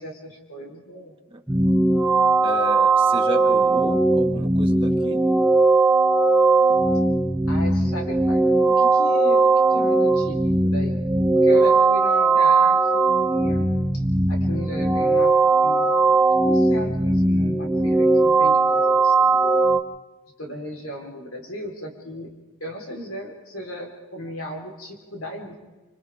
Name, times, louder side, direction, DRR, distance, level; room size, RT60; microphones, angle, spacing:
voice 1, 0.0-1.2 7.5-11.0 11.3-14.0 14.3-15.3 15.6-16.2 16.4-19.6 20.4-22.3 22.6-25.6, equal, 65° left, 0 dB, 4.2 m, -36 dB
sound 1, 1.5-19.8, right 3 dB, 5° right, 0.9 m, -19 dB
voice 2, 2.4-5.2 11.6-11.8, right 1 dB, 25° right, 0 dB, 2.0 m, -33 dB
28.0 x 27.0 x 3.6 m, 1.2 s
head